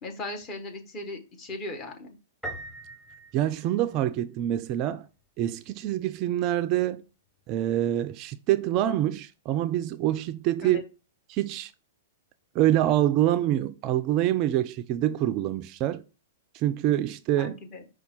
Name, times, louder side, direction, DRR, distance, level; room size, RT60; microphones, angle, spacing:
voice 1, 0.0-2.1 10.6-10.8 17.4-17.8, left 2 dB, 30° left, 1.2 m, -37 dB
Piano, 2.4-4.3, right 2 dB, 5° left, 0.9 m, -41 dB
voice 2, 3.3-5.1 5.4-7.0 7.5-10.8 11.3-11.7 12.5-16.0 16.5-17.6, right 12 dB, 40° right, 0.3 m, -26 dB
5.3 x 2.3 x 4.4 m
figure-of-eight pair, 105°, 0 cm